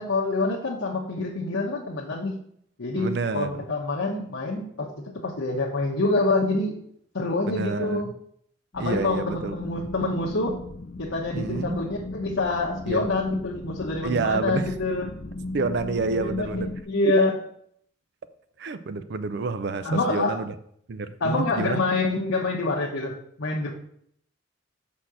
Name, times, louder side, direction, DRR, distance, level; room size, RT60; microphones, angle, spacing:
voice 1, 0.0-2.4 2.8-6.8 7.1-8.1 8.7-10.6 11.0-15.1 16.2-17.4 19.8-20.4 21.2-23.7, left 2 dB, 85° left, 1.1 m, -26 dB
voice 2, 3.0-3.6 7.5-8.1 8.8-9.7 11.3-11.8 12.9-13.1 14.0-14.7 15.5-16.7 17.1-17.2 18.6-20.5 20.9-21.8, right 4 dB, 55° right, 0.4 m, -29 dB
sound 1, 8.7-16.8, left 2 dB, 40° left, 0.4 m, -36 dB
5.7 x 4.2 x 6.3 m
head